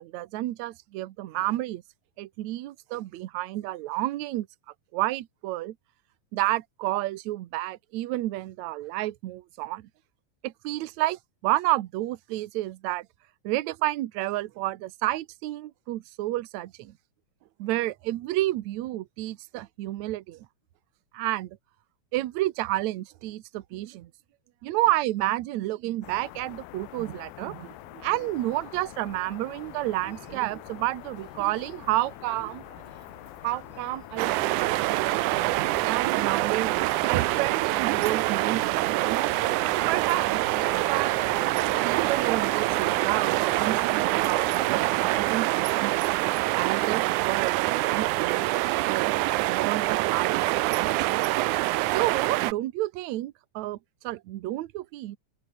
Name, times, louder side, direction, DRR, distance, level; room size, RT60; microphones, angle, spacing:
voice 1, 0.0-1.8 2.2-4.5 4.9-5.8 6.3-9.9 10.4-13.1 13.4-16.9 17.6-20.5 21.1-21.6 22.1-24.1 24.6-32.9 33.4-34.6 35.8-36.7 37.1-39.3 39.9-41.3 41.8-46.0 46.5-49.1 49.5-50.3 51.9-53.8 54.0-55.2, right 16 dB, 70° right, 1.8 m, -30 dB
sound 1, 26.0-45.4, left 17 dB, 85° left, 2.7 m, -45 dB
Human voice, 28.4-43.3, right 3 dB, 35° right, 5.7 m, -54 dB
sound 2, 34.2-52.5, right 19 dB, 90° right, 1.7 m, -25 dB
open air
omnidirectional pair, 4.2 m